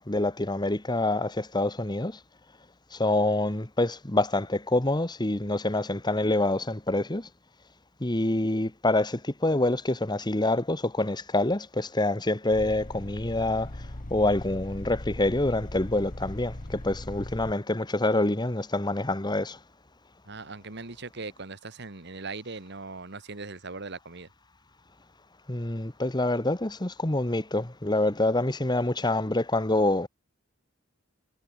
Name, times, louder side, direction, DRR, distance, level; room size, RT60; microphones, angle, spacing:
voice 1, 0.0-2.2 2.9-7.3 8.0-13.7 14.1-19.6 25.5-30.1, left 2 dB, 20° left, 1.5 m, -26 dB
sound 1, 12.5-17.5, left 1 dB, 45° left, 1.5 m, -39 dB
voice 2, 20.3-24.3, right 3 dB, 60° right, 2.0 m, -39 dB
head